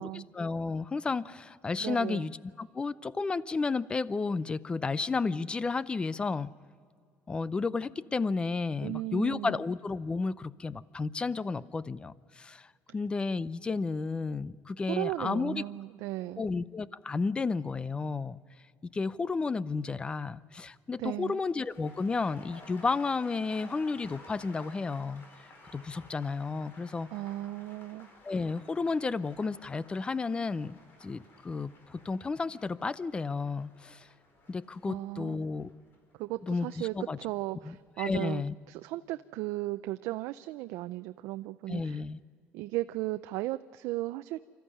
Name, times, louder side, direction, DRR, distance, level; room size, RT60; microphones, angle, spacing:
voice 1, 0.0-6.5 7.3-15.6 16.4-18.4 18.8-25.2 25.7-27.1 28.2-34.1 34.5-35.7 36.4-37.2 37.6-38.5 41.7-42.2, left 4 dB, 20° left, 18 dB, 0.5 m, -32 dB
voice 2, 1.8-2.3 8.8-9.6 14.9-16.4 21.0-21.4 27.1-28.1 34.9-35.4 36.1-38.4 38.7-42.0 42.5-44.5, right 17 dB, 85° right, 10 dB, 0.5 m, -36 dB
sound 1, 21.3-37.4 37.7-38.1, left 2 dB, 45° left, 4.8 m, -55 dB
26.5 x 14.0 x 9.9 m, 2.2 s
cardioid pair, 125°, 5 cm